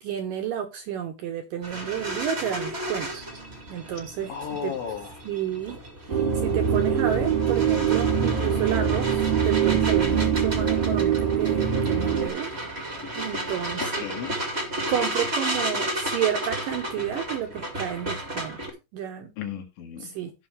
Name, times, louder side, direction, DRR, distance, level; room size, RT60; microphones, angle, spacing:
voice 1, 0.0-3.2 3.7-4.8 5.2-5.8 6.1-12.6 13.1-14.1 14.9-18.6 18.9-19.3 20.0-20.3, right 10 dB, 80° right, 2.0 m, -31 dB
sound 1, 1.6-18.7, right 1 dB, 55° right, 0.6 m, -33 dB
voice 2, 4.3-5.2 13.8-14.4 19.4-20.1, left 8 dB, 80° left, 4.2 m, -34 dB
sound 2, 6.1-12.3, right 7 dB, 30° right, 1.0 m, -23 dB
16.0 x 5.7 x 3.2 m
omnidirectional pair, 5.2 m